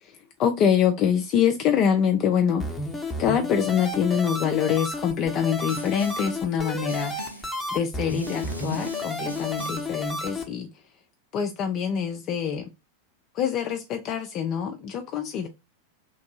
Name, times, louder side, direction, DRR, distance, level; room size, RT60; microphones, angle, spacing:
voice 1, 0.0-2.6 3.2-10.7 11.3-12.7 13.3-15.5, left 8 dB, 35° left, 0.4 m, -25 dB
sound 1, 2.6-10.4, left 2 dB, 5° left, 0.7 m, -32 dB
Snare drum, 5.7-6.4 6.9-7.6 8.1-10.0, right 1 dB, 90° right, 0.4 m, -40 dB
3.0 x 2.6 x 2.6 m
figure-of-eight pair, 90°, 0 cm